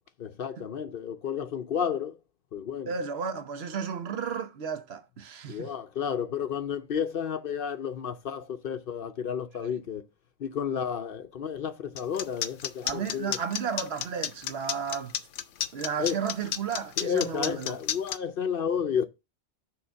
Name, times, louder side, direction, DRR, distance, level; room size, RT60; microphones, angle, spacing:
voice 1, 0.2-2.2 2.5-2.9 5.5-10.0 10.4-13.4 16.0-16.2 17.0-19.1, left 7 dB, 55° left, 0.7 m, -31 dB
voice 2, 2.9-5.7 9.6-9.8 12.8-15.2 15.7-17.8, right 6 dB, 60° right, 1.0 m, -33 dB
sound 1, 12.0-18.2, left 10 dB, 90° left, 1.0 m, -31 dB
6.7 x 4.0 x 5.7 m
omnidirectional pair, 1.2 m